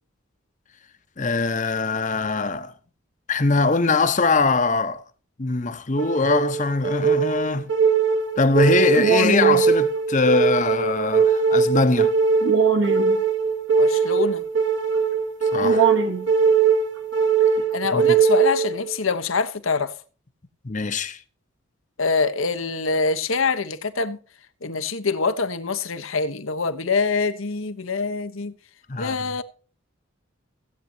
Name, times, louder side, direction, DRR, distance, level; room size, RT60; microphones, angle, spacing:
voice 1, 1.2-2.7 3.3-5.0 5.4-7.7 8.4-12.1 15.5-15.9 17.9-18.2 20.6-21.2 28.9-29.2, left 3 dB, 35° left, 0.9 m, -22 dB
sound 1, 6.0-19.0, right 5 dB, 65° right, 1.4 m, -20 dB
voice 2, 13.8-14.4 17.7-19.9 22.0-24.2 24.6-28.5 29.0-29.4, left 4 dB, 85° left, 1.1 m, -25 dB
16.5 x 8.5 x 2.8 m
head